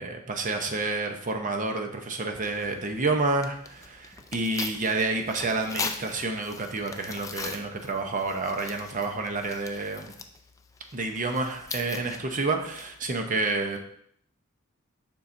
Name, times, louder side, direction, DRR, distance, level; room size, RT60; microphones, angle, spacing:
voice 1, 0.0-10.1 10.9-13.8, right 3 dB, 40° right, 4 dB, 0.7 m, -29 dB
Tearing, 2.4-13.2, left 4 dB, 15° left, 0.3 m, -41 dB
7.0 x 5.4 x 2.6 m, 0.69 s
head